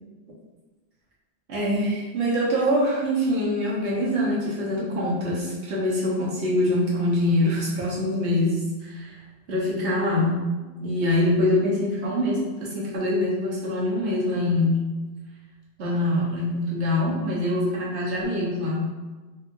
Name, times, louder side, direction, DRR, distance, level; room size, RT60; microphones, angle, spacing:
voice 1, 1.5-9.2 9.5-10.4 10.8-14.9 15.8-18.9, left 1 dB, 85° right, -5 dB, 1.3 m, -24 dB
4.1 x 2.7 x 2.5 m, 1.2 s
omnidirectional pair, 1.1 m